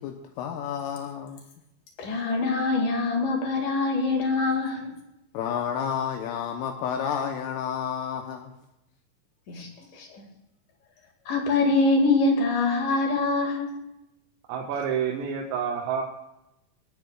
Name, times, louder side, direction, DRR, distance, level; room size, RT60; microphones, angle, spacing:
voice 1, 0.0-1.4 5.4-8.5, left 8 dB, 80° left, 3 dB, 3.3 m, -30 dB
voice 2, 2.0-4.9 9.5-9.7 9.9-10.2 11.3-13.8, left 3 dB, 50° left, 2 dB, 2.9 m, -24 dB
voice 3, 14.5-16.0, right 7 dB, 85° right, -2 dB, 4.1 m, -28 dB
27.0 x 9.2 x 2.4 m, 0.89 s
omnidirectional pair, 5.9 m